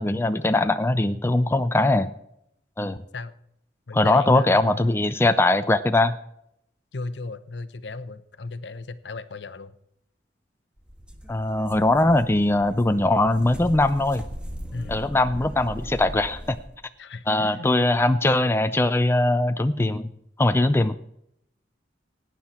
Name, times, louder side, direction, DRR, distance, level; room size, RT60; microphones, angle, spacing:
voice 1, 0.0-2.1 2.8-3.0 3.9-6.1 11.3-14.2 14.9-16.6 17.3-20.1 20.4-21.0, left 2 dB, 15° left, 10 dB, 0.5 m, -21 dB
voice 2, 3.9-4.9 6.9-9.7 14.7-15.1 17.0-17.7 19.8-20.1, left 3 dB, 70° left, 13 dB, 0.8 m, -36 dB
sound 1, 10.8-16.7, equal, 5° right, 1.4 m, -39 dB
17.5 x 9.6 x 4.3 m, 0.74 s
head